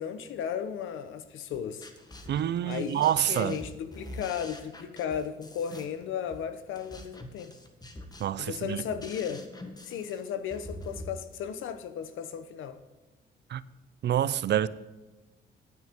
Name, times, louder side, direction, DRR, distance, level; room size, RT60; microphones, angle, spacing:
voice 1, 0.0-1.9 2.6-7.5 8.4-9.4 9.8-12.8, left 8 dB, 85° left, 1.0 m, -35 dB
sound 1, 1.5-11.1, left 1 dB, 20° left, 1.7 m, -45 dB
voice 2, 2.3-3.6 8.2-8.8 13.5-13.6 14.0-14.7, right 11 dB, 60° right, 0.6 m, -27 dB
9.6 x 9.5 x 5.3 m
cardioid pair, 90°, 20 cm